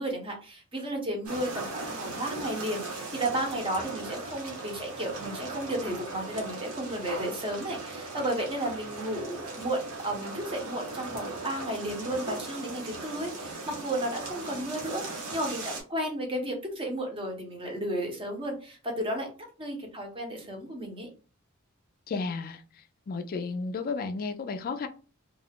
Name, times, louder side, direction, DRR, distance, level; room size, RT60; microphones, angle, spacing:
voice 1, 0.0-19.3 19.6-21.1, right 1 dB, 25° right, 2 dB, 0.8 m, -33 dB
sound 1, 1.2-15.8, right 3 dB, 80° right, 1.0 m, -38 dB
voice 2, 22.1-22.6 23.1-24.9, left 4 dB, 40° left, 8 dB, 0.3 m, -32 dB
2.3 x 2.3 x 3.4 m, 0.36 s
head